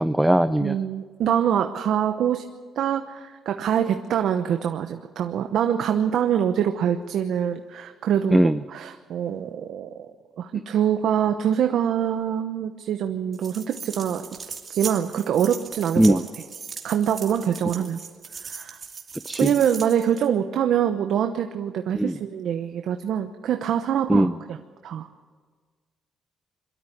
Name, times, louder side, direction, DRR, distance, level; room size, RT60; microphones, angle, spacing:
voice 1, 0.0-0.8 8.3-8.5 16.0-16.2 19.3-19.5 22.0-22.1 24.1-24.3, right 1 dB, 5° right, 12 dB, 0.5 m, -19 dB
voice 2, 0.6-2.5 2.8-10.1 10.4-14.2 14.7-16.2 16.8-18.0 18.4-18.8 19.4-25.1, right 9 dB, 75° right, 7 dB, 0.9 m, -25 dB
sound 1, 13.3-20.3, right 5 dB, 40° right, 2.6 m, -38 dB
23.0 x 13.0 x 9.5 m, 1.5 s
cardioid pair, 90°, 0 cm